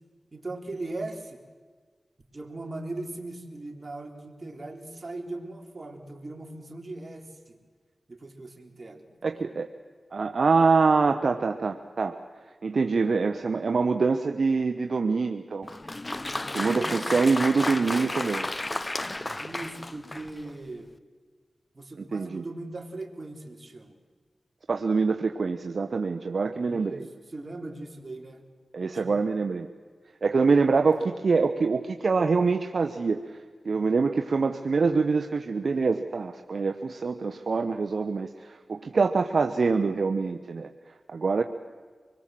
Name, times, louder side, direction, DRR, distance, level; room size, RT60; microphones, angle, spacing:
voice 1, 0.3-1.4 2.3-7.6 8.1-9.5 16.6-17.3 19.4-20.9 21.7-24.0 26.5-27.1 27.3-28.4 28.9-29.2 30.9-31.1, right 2 dB, 45° right, 3 dB, 3.4 m, -39 dB
voice 2, 9.2-9.7 10.1-12.1 12.6-15.7 16.5-18.5 22.0-22.4 24.7-27.1 28.7-29.7 30.2-40.7 41.1-41.4, right 4 dB, 70° right, 6 dB, 1.0 m, -25 dB
Applause, 15.6-20.5, left 2 dB, 30° left, 0.7 m, -32 dB
25.5 x 21.5 x 7.6 m, 1.5 s
cardioid pair, 45°, 0 cm